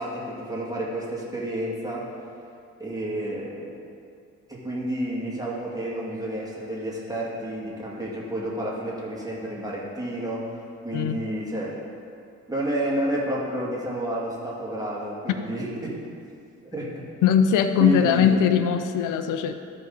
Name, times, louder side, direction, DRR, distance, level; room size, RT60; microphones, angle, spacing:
voice 1, 0.0-2.1 2.8-3.7 4.5-10.4 10.8-11.8 12.5-16.0 16.6-17.0 17.8-18.4, right 1 dB, 10° right, -5 dB, 2.4 m, -30 dB
voice 2, 17.2-19.6, left 8 dB, 85° left, 9 dB, 0.5 m, -20 dB
14.0 x 5.2 x 4.0 m, 2.4 s
cardioid pair, 90°, 30 cm